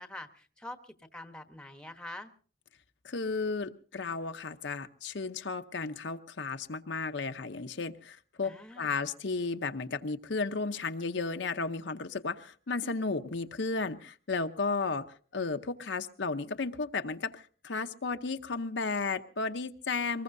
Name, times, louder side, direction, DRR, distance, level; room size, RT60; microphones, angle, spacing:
voice 1, 0.0-2.3 8.4-9.0, left 1 dB, 5° left, 8 dB, 1.0 m, -45 dB
voice 2, 3.0-15.1 15.3-20.2, left 4 dB, 70° left, 7 dB, 0.8 m, -34 dB
24.0 x 20.5 x 2.6 m, 0.41 s
head